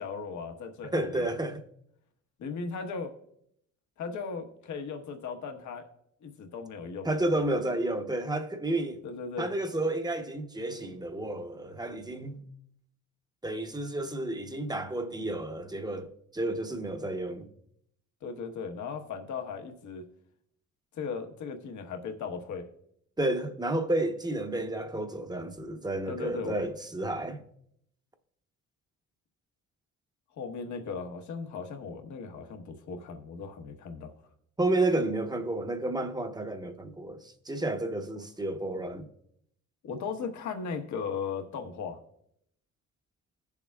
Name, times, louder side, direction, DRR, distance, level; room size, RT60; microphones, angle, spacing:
voice 1, 0.0-1.3 2.4-3.1 4.0-5.9 6.2-7.1 7.4-7.5 9.0-9.5 18.2-20.0 20.9-22.6 26.1-26.6 30.3-34.1 39.8-42.0, left 5 dB, 70° left, 1.3 m, -37 dB
voice 2, 0.9-1.6 7.0-9.0 9.4-12.4 13.4-17.5 23.2-27.4 34.6-39.1, right 1 dB, 15° right, 0.9 m, -31 dB
16.0 x 7.1 x 2.4 m
cardioid pair, 90°, 30 cm